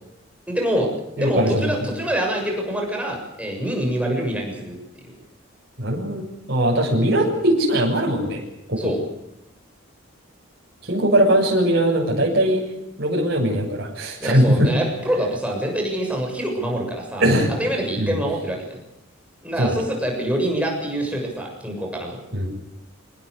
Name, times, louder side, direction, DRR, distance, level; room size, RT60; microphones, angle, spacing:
voice 1, 0.5-0.9 1.2-4.8 8.8-9.0 14.2-17.2 17.6-18.6 19.4-22.2, right 1 dB, 5° right, 1 dB, 7.0 m, -25 dB
voice 2, 1.2-1.8 5.8-8.4 8.7-8.9 10.9-12.6 13.0-14.7 17.2-17.5 18.0-18.2 19.6-19.8 22.3-22.5, right 1 dB, 50° right, -2 dB, 7.1 m, -20 dB
25.5 x 19.0 x 8.2 m, 0.90 s
head